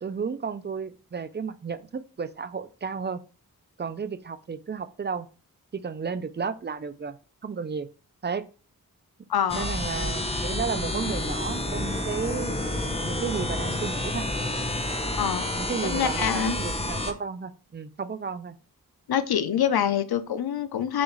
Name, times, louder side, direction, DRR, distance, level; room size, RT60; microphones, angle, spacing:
voice 1, 0.0-3.2 3.8-5.3 5.7-7.2 7.4-7.9 8.2-8.4 9.5-14.2 15.6-18.6, right 5 dB, 30° right, 12 dB, 0.4 m, -33 dB
voice 2, 9.3-9.7 15.2-15.5 15.8-16.6 19.1-21.0, left 9 dB, 85° left, 12 dB, 0.5 m, -25 dB
sound 1, 9.5-17.1, left 1 dB, 15° left, 0.6 m, -29 dB
6.1 x 2.4 x 3.1 m, 0.35 s
wide cardioid pair, 50°, 37 cm